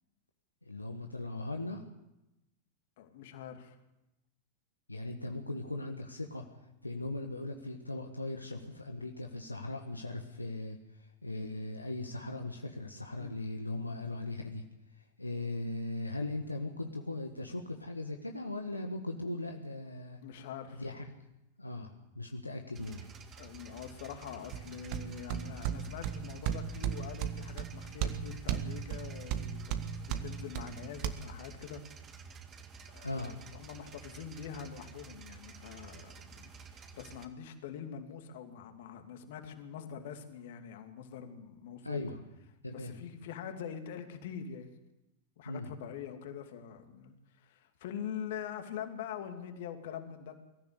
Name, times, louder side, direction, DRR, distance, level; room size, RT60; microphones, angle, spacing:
voice 1, 0.7-1.8 4.9-6.4 6.8-14.6 15.2-20.2 20.8-21.1 21.6-23.1 33.0-33.4 41.8-42.2 42.6-42.9 45.4-45.7, left 2 dB, 85° left, 3 dB, 1.6 m, -39 dB
voice 2, 3.0-3.8 13.2-13.3 20.2-20.8 23.4-29.8 30.1-31.8 32.8-42.0 42.7-44.7 45.4-50.4, left 8 dB, 55° left, 6 dB, 2.6 m, -44 dB
sound 1, 22.7-37.3, right 5 dB, 25° right, 2.2 m, -51 dB
sound 2, 24.5-31.1, right 9 dB, 45° right, 1.5 m, -36 dB
23.0 x 14.5 x 8.3 m, 0.92 s
figure-of-eight pair, 90°, 0 cm